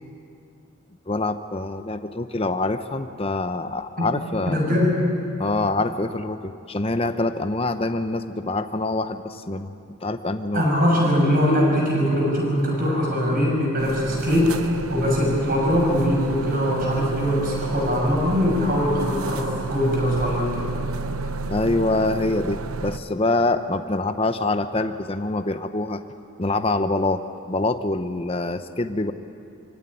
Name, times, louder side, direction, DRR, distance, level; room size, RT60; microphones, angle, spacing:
voice 1, 1.1-4.6 5.4-10.7 21.5-26.0 26.4-29.1, left 2 dB, 25° left, 9 dB, 0.7 m, -25 dB
voice 2, 4.5-5.0 10.5-20.7, equal, 40° right, -2 dB, 7.2 m, -22 dB
sound 1, 13.8-23.0, right 3 dB, 80° right, 0.9 m, -31 dB
25.0 x 16.5 x 9.8 m, 2.6 s
head